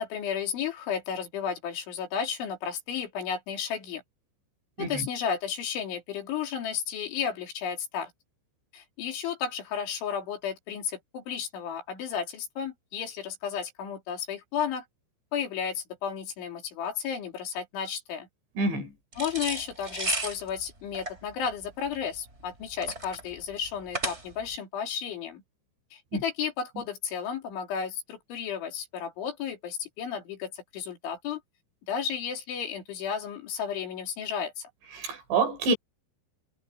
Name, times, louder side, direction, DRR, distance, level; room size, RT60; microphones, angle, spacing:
voice 1, 0.0-4.0 4.8-8.1 8.7-14.9 15.3-18.3 19.2-25.4 25.9-31.4 31.9-34.7, left 7 dB, 75° left, 5.7 m, -33 dB
voice 2, 18.6-18.9 26.1-26.2 35.0-35.8, right 3 dB, 65° right, 6.9 m, -27 dB
sound 1, 19.1-24.6, right 2 dB, 15° right, 4.6 m, -35 dB
omnidirectional pair, 5.5 m